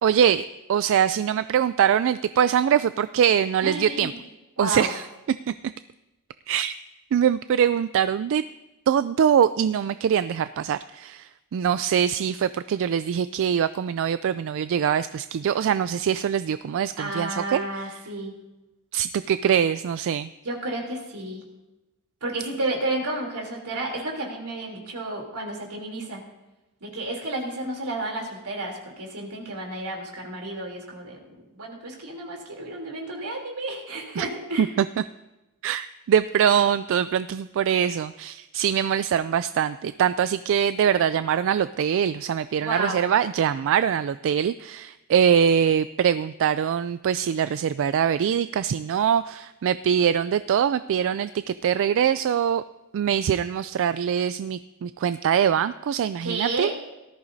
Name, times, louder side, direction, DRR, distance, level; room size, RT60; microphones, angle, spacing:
voice 1, 0.0-4.1 4.6-5.0 6.5-6.8 7.1-8.4 8.9-17.9 18.9-20.3 34.2-34.3 34.6-34.7 35.6-52.6 52.9-56.7, right 8 dB, 60° right, 13 dB, 0.3 m, -23 dB
voice 2, 3.6-4.2 4.6-4.9 17.0-18.3 20.4-21.4 22.2-26.2 26.8-34.7 42.6-43.0 56.2-56.7, right 2 dB, 85° right, 0 dB, 3.3 m, -31 dB
18.5 x 13.5 x 2.7 m, 1.0 s
head